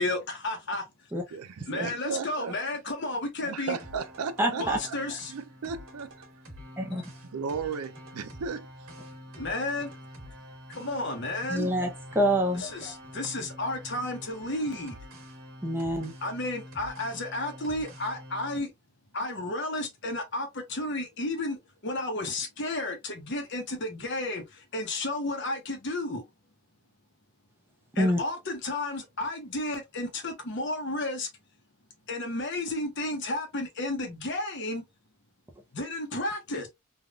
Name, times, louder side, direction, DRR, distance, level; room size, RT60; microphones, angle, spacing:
voice 1, 0.0-0.8 1.7-3.8 4.6-5.3 9.4-9.9 10.7-11.7 12.5-14.9 16.2-18.7 19.1-21.6 21.8-24.4 24.7-26.2 28.0-31.3 32.1-34.8 35.7-36.7, left 2 dB, 50° left, 0.8 m, -32 dB
voice 2, 1.3-2.6 3.4-5.0 5.3-6.2 7.3-8.9, right 5 dB, 85° right, 0.4 m, -35 dB
sound 1, 3.8-18.6, equal, 70° right, 1.3 m, -46 dB
voice 3, 4.4-4.8 6.8-7.0 11.5-12.6 15.6-16.1 28.0-28.2, equal, 10° right, 0.6 m, -26 dB
3.4 x 2.3 x 2.3 m
head